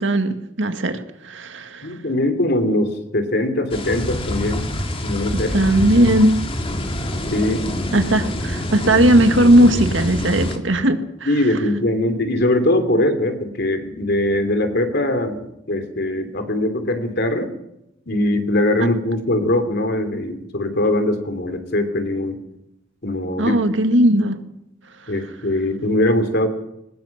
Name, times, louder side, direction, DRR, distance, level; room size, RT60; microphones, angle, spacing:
voice 1, 0.0-2.0 5.3-6.3 7.9-11.3 23.4-24.4, right 1 dB, 70° right, 7 dB, 2.1 m, -17 dB
voice 2, 1.8-4.6 5.0-5.5 7.3-7.6 11.2-17.5 18.1-22.4 23.0-23.6 25.1-26.5, left 1 dB, 60° left, 8 dB, 3.1 m, -21 dB
sound 1, 3.7-10.6, left 1 dB, 30° left, 2.4 m, -26 dB
22.0 x 20.0 x 6.0 m, 0.84 s
head